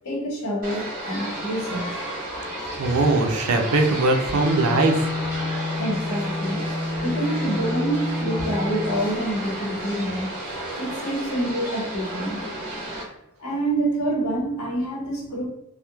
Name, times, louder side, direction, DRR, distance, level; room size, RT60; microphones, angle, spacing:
voice 1, 0.0-2.0 5.8-6.6 7.0-10.3 10.8-12.4 13.4-15.5, right 1 dB, 85° left, -3 dB, 0.8 m, -27 dB
sound 1, 0.6-13.0, right 1 dB, 40° right, 0.9 m, -32 dB
voice 2, 2.8-5.1, right 2 dB, 80° right, 4 dB, 0.4 m, -20 dB
Bowed string instrument, 4.2-9.5, left 2 dB, 5° left, 0.5 m, -29 dB
2.9 x 2.0 x 2.3 m, 0.90 s
head